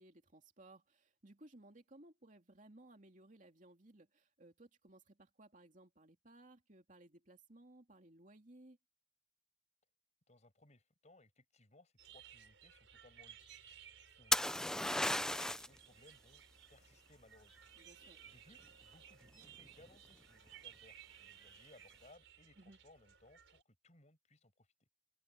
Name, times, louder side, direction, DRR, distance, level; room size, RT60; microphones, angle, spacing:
voice 1, 0.0-8.8 17.8-18.2 22.6-22.8, right 1 dB, 45° right, 2.7 m, -61 dB
voice 2, 10.3-13.4 13.8-16.4 16.7-17.5 17.9-24.9, left 2 dB, 40° left, 6.0 m, -65 dB
sound 1, 12.0-23.6, right 9 dB, 85° right, 4.5 m, -59 dB
sound 2, 14.3-15.8 19.4-19.9, left 1 dB, 5° left, 0.4 m, -34 dB
open air
head